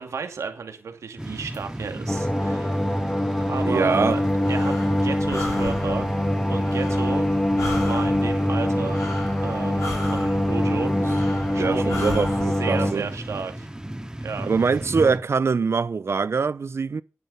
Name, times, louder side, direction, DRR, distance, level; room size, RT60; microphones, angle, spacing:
voice 1, 0.0-2.8 3.5-4.2 4.5-6.2 6.5-7.3 7.8-9.1 9.4-11.1 11.5-13.7 14.2-14.5, right 5 dB, 85° right, 2.3 m, -33 dB
sound 1, 1.2-15.2, right 1 dB, 15° right, 2.3 m, -35 dB
sound 2, 2.1-12.9, left 1 dB, 15° left, 2.5 m, -24 dB
voice 2, 3.6-4.2 11.0-11.1 11.6-13.1 14.5-17.0, right 5 dB, 60° right, 0.7 m, -23 dB
Breathing, 4.1-12.4, left 2 dB, 80° left, 5.2 m, -36 dB
11.0 x 8.9 x 5.5 m
cardioid pair, 50°, 5 cm